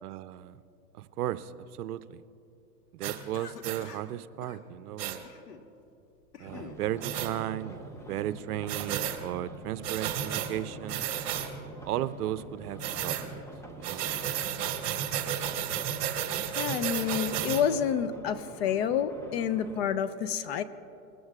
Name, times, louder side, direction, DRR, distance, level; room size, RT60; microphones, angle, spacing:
voice 1, 0.0-0.6 0.9-1.5 1.8-2.2 2.9-5.2 6.4-11.1 11.8-13.4 13.8-14.1, right 13 dB, 70° right, 14 dB, 0.6 m, -35 dB
sound 1, 3.0-3.2 3.6-3.8 5.0-5.2 7.0-7.3 8.7-9.2 9.8-10.5 10.9-11.5 12.8-13.2 13.8-17.6, right 10 dB, 40° right, 1.8 m, -32 dB
Cough, 3.3-4.1 4.4-4.6 5.2-5.7 6.1-6.8, left 6 dB, 90° left, 1.5 m, -47 dB
sound 2, 6.4-14.6 16.8-19.9, right 1 dB, 5° left, 0.7 m, -46 dB
voice 2, 16.6-20.6, left 8 dB, 45° left, 12 dB, 0.7 m, -29 dB
21.0 x 14.0 x 2.4 m, 2.7 s
hypercardioid pair, 130°, 47 cm